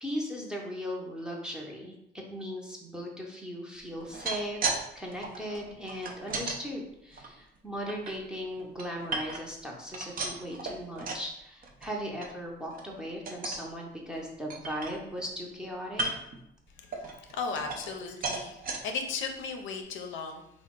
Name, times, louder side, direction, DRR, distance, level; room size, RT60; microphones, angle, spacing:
voice 1, 0.0-16.1, equal, 5° right, -2 dB, 0.7 m, -38 dB
sound 1, 4.0-4.8 5.1-6.6 7.1-8.1 8.6-9.6 9.9-11.3 11.6-11.9 12.2-12.3 12.7-12.9 13.3-13.7 14.1-14.2 14.5-15.3 15.9-16.4 16.9-18.0 18.2-18.8 19.4-19.5 19.8-19.9, right 3 dB, 45° right, 0.5 m, -35 dB
voice 2, 16.8-20.4, left 5 dB, 75° left, 4 dB, 0.5 m, -36 dB
2.9 x 2.0 x 3.6 m, 0.79 s
cardioid pair, 90°, 20 cm